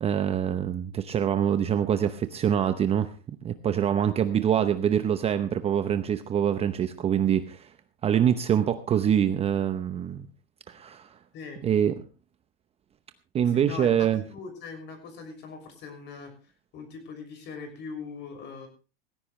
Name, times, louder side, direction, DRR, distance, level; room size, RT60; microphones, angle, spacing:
voice 1, 0.0-3.1 3.4-7.7 8.0-10.3 10.7-11.2 11.6-12.0 13.3-14.2, right 9 dB, 20° right, 10 dB, 0.8 m, -25 dB
voice 2, 11.3-11.7 13.5-16.3 16.7-18.7, left 5 dB, 35° left, 6 dB, 6.2 m, -41 dB
19.0 x 16.0 x 3.2 m, 0.33 s
supercardioid pair, 145°, 31 cm